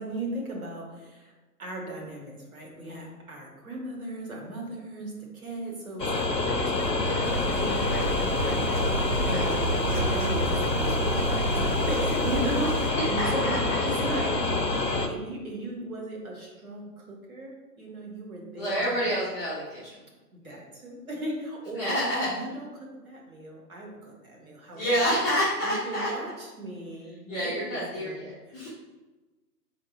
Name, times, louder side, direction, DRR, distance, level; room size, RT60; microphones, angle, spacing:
voice 1, 0.0-1.3 1.6-9.6 9.9-18.8 19.0-19.1 20.3-22.0 22.2-25.0 25.6-28.7, right 1 dB, 60° right, -1 dB, 1.3 m, -37 dB
sound 1, 6.0-15.1, left 2 dB, 90° left, 0.7 m, -27 dB
voice 2, 6.9-8.0 9.2-9.4 13.2-13.6 14.8-14.9 18.6-19.9 20.5-20.6 21.8-22.3 24.7-26.1 27.3-28.7, equal, 10° left, -10 dB, 0.7 m, -29 dB
sound 2, 7.2-12.9, right 2 dB, 30° right, 0.8 m, -31 dB
5.4 x 3.7 x 2.4 m, 1.1 s
figure-of-eight pair, 130°, 48 cm